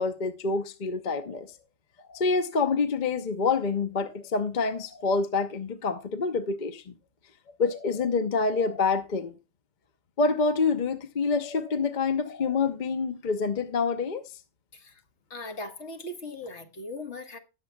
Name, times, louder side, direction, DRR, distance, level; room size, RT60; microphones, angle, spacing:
voice 1, 0.0-1.5 2.1-6.9 7.6-9.3 10.2-14.2, left 4 dB, 45° left, 0.8 m, -27 dB
voice 2, 15.3-17.4, left 2 dB, 60° left, 1.6 m, -39 dB
18.5 x 7.4 x 2.2 m
omnidirectional pair, 1.4 m